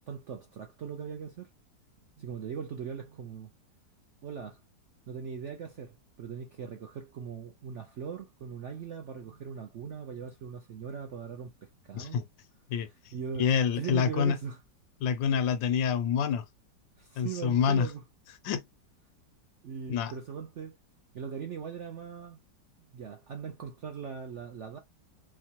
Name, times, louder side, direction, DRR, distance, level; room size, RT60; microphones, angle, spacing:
voice 1, 0.1-1.5 2.2-3.5 4.2-4.6 5.1-12.2 13.1-13.5 13.7-14.6 17.0-18.0 19.6-20.8 21.1-22.4 22.8-24.8, right 7 dB, 70° right, 0.6 m, -40 dB
voice 2, 11.9-12.3 12.7-14.4 15.0-16.4 17.2-17.9 18.4-18.6 19.9-20.1, left 7 dB, 85° left, 1.4 m, -27 dB
4.6 x 2.1 x 2.9 m
omnidirectional pair, 2.0 m